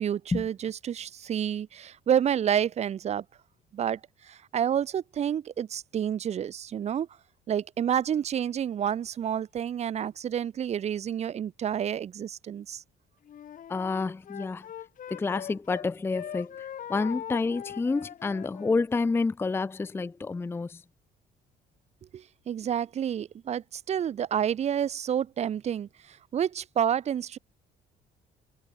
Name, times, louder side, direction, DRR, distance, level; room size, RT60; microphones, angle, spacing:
voice 1, 0.0-3.2 3.7-4.0 4.3-7.1 7.5-12.8 22.1-25.9 26.3-27.4, right 9 dB, 40° right, 0.6 m, -29 dB
Wind instrument woodwind instrument, 13.3-18.9, left 9 dB, 50° left, 5.2 m, -41 dB
voice 2, 13.7-14.7 15.1-16.6 16.9-20.8, left 4 dB, 15° left, 0.5 m, -29 dB
cardioid pair, 110°, 17 cm